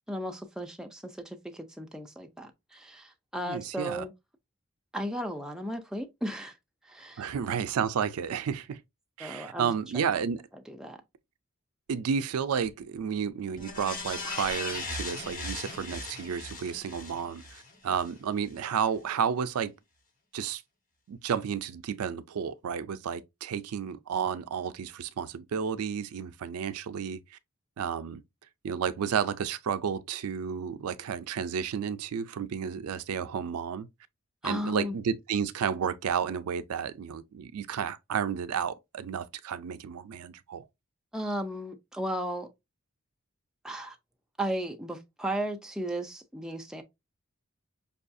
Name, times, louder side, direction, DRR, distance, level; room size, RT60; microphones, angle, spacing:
voice 1, 0.1-4.1 4.9-6.6 6.8-7.3 9.2-10.1 10.7-11.0 34.4-35.0 41.1-42.5 43.6-44.0 44.4-46.8, right 1 dB, 5° right, 0.4 m, -35 dB
voice 2, 3.4-4.0 7.2-8.8 9.2-10.4 11.9-19.7 20.3-20.6 21.1-27.4 27.8-28.2 28.6-33.9 34.4-40.7, right 7 dB, 80° right, 0.4 m, -32 dB
sound 1, 13.6-18.1 18.5-18.6, left 3 dB, 35° left, 1.2 m, -38 dB
5.4 x 2.3 x 2.5 m
head